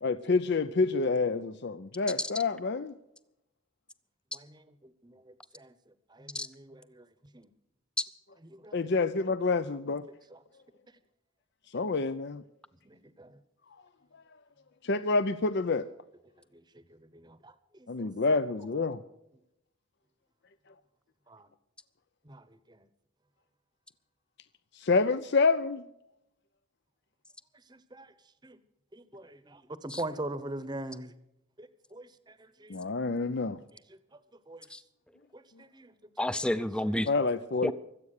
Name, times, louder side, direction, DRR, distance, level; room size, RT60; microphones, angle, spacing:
voice 1, 0.0-2.9 8.7-10.0 11.7-12.4 14.8-15.9 17.9-19.0 24.7-25.8 32.7-33.6 37.1-37.7, left 3 dB, 55° left, 0.6 m, -28 dB
voice 2, 6.1-7.1 7.3-7.5 8.5-8.8 10.3-10.4 11.8-11.9 12.8-13.4 16.5-18.1 21.3-21.5 22.2-22.8 27.7-28.1 28.4-28.6 28.9-31.1 31.6-32.8 33.9-34.0 34.5-34.7 35.3-35.9, right 1 dB, 20° right, 0.9 m, -43 dB
voice 3, 36.2-37.1 37.6-37.7, left 1 dB, 5° left, 0.6 m, -30 dB
24.0 x 8.4 x 6.6 m
head